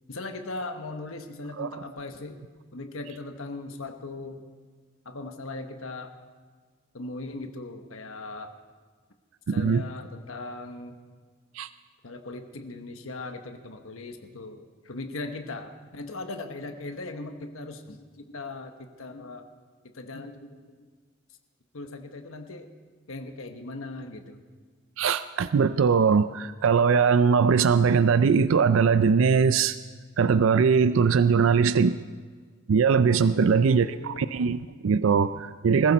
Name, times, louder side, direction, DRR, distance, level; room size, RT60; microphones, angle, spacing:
voice 1, 0.1-2.4 2.7-4.5 5.0-6.1 6.9-8.5 9.5-11.0 12.0-19.4 19.9-20.7 21.7-22.7 23.1-24.4 33.3-34.9, left 2 dB, 90° left, 6 dB, 1.2 m, -39 dB
voice 2, 9.5-9.8 11.6-11.7 25.0-29.8 30.2-32.0 32.7-35.9, right 6 dB, 80° right, 13 dB, 0.4 m, -21 dB
21.0 x 15.0 x 4.1 m, 1.5 s
head